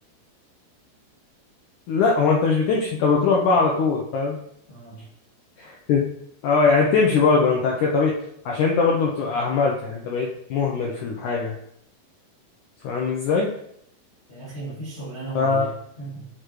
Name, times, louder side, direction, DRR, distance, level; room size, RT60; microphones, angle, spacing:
voice 1, 1.9-4.4 5.6-6.0 6.4-8.2 8.5-11.6 12.8-13.5 15.4-15.7, left 4 dB, 80° left, -2 dB, 1.8 m, -21 dB
voice 2, 4.7-5.0 14.3-16.3, right 3 dB, 30° left, -10 dB, 1.3 m, -36 dB
6.7 x 4.9 x 3.1 m, 0.71 s
omnidirectional pair, 4.3 m